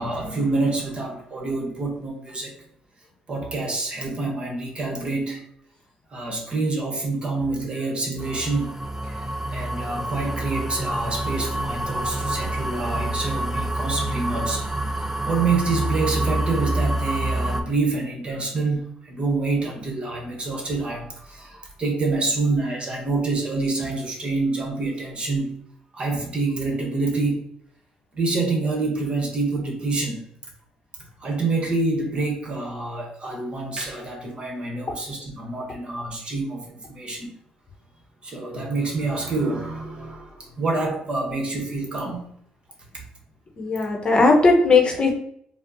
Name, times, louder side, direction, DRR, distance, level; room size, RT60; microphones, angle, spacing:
voice 1, 0.0-2.6 3.3-5.5 6.1-8.8 9.0-14.7 15.3-25.6 25.9-27.4 28.1-30.2 31.2-37.3 38.2-42.3, right 3 dB, 40° right, 1 dB, 1.0 m, -27 dB
sound 1, 8.2-17.6, right 1 dB, 10° right, 0.5 m, -27 dB
voice 2, 43.6-45.1, left 3 dB, 40° left, 1 dB, 0.8 m, -17 dB
4.2 x 2.0 x 2.6 m, 0.67 s
supercardioid pair, 75°, 3 cm